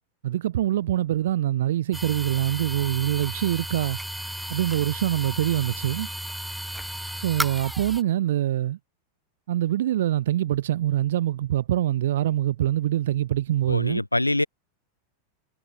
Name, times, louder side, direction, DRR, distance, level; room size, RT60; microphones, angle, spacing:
voice 1, 0.2-4.0 4.5-6.1 7.2-8.8 9.5-14.0, right 12 dB, 60° right, 0.4 m, -24 dB
sound 1, 1.9-8.0, equal, ahead, 0.7 m, -34 dB
voice 2, 13.7-14.4, left 1 dB, 85° left, 0.4 m, -24 dB
figure-of-eight pair, 90°, 0 cm